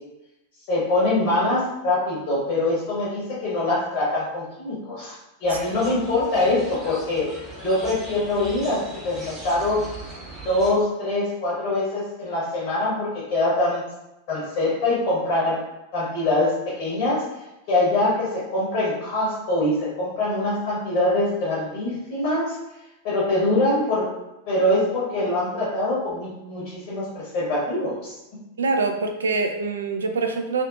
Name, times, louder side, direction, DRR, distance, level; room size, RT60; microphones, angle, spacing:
voice 1, 0.7-9.8 10.4-13.8 14.3-15.6 15.9-17.2 17.7-22.5 23.0-24.1 24.5-28.1, left 2 dB, 50° left, -7 dB, 0.9 m, -24 dB
sound 1, 5.4-10.7, right 2 dB, 15° right, 0.8 m, -39 dB
voice 2, 28.6-30.6, right 3 dB, 70° right, 5 dB, 0.3 m, -24 dB
2.6 x 2.4 x 2.3 m, 0.93 s
figure-of-eight pair, 90°, 0 cm